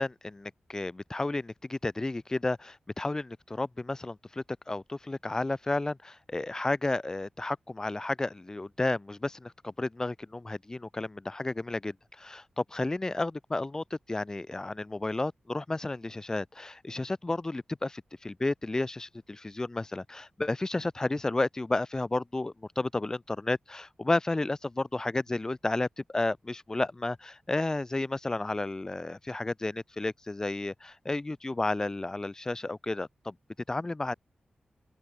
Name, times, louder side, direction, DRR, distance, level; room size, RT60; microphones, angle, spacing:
voice 1, 0.0-33.3 33.7-34.1, left 2 dB, 20° left, 2.7 m, -32 dB
open air
wide cardioid pair, 125°, 3 cm